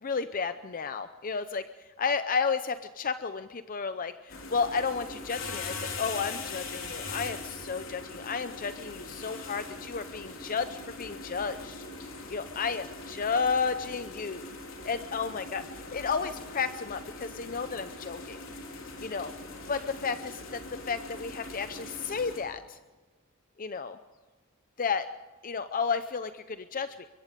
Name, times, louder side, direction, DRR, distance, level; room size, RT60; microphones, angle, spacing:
voice 1, 0.0-1.6 2.0-11.8 12.3-14.5 14.8-15.6 15.9-18.4 19.0-19.3 19.7-22.8 23.6-24.0 24.8-25.1 25.4-27.1, left 5 dB, 40° left, 11 dB, 0.6 m, -32 dB
sound 1, 4.3-22.4, left 3 dB, 70° left, 4.1 m, -41 dB
24.5 x 22.5 x 5.2 m, 1.3 s
head